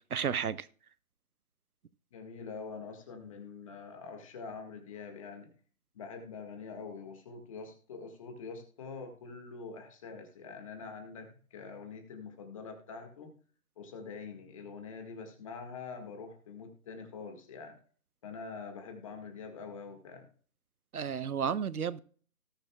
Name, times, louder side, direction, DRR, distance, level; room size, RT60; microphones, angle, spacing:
voice 1, 0.1-0.7 20.9-22.0, right 7 dB, 85° right, 1.0 m, -32 dB
voice 2, 2.1-5.5 5.9-13.3 13.8-17.8 18.2-20.3, left 5 dB, 25° left, 1.7 m, -45 dB
18.5 x 6.8 x 2.3 m
hypercardioid pair, 165°, 43 cm